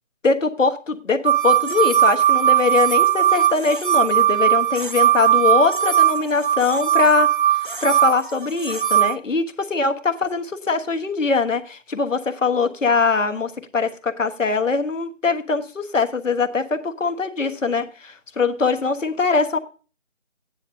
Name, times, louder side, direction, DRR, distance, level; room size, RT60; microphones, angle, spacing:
voice 1, 0.2-7.3 7.8-19.6, left 4 dB, 85° left, 6 dB, 1.3 m, -22 dB
sound 1, 1.2-9.1, right 11 dB, 45° right, 0.7 m, -18 dB
13.5 x 9.7 x 2.6 m, 0.35 s
figure-of-eight pair, 170°, 37 cm